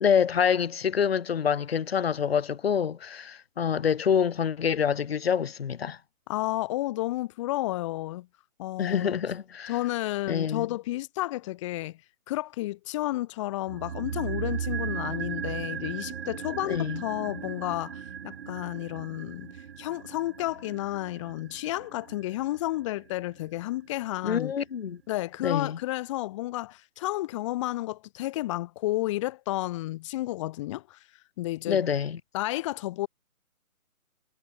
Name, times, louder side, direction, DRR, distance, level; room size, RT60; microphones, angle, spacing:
voice 1, 0.0-6.0 8.8-9.7 10.3-10.7 16.6-17.0 24.2-25.0 25.4-25.8 31.7-32.2, left 7 dB, 45° left, 1.4 m, -26 dB
voice 2, 6.3-8.3 8.6-9.2 9.7-12.0 12.3-19.5 19.8-24.5 25.1-31.0 31.4-31.8 32.3-33.1, left 17 dB, 20° left, 2.2 m, -31 dB
sound 1, 13.7-23.9 24.2-24.3, right 8 dB, 45° right, 6.9 m, -37 dB
figure-of-eight pair, 155°, 43 cm